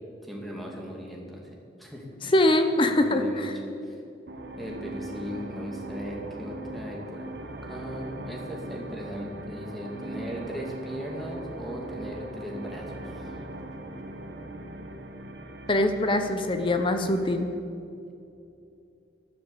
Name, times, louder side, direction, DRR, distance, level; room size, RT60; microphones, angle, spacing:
voice 1, 0.2-1.5 1.8-2.3 2.9-3.5 3.8-4.0 4.6-7.3 7.6-13.3, equal, ahead, -1 dB, 2.4 m, -38 dB
voice 2, 2.3-3.5 15.7-17.5, left 1 dB, 25° left, 7 dB, 0.8 m, -23 dB
sound 1, 4.3-17.6, right 2 dB, 60° right, 1.3 m, -40 dB
13.0 x 12.0 x 8.3 m, 2.7 s
head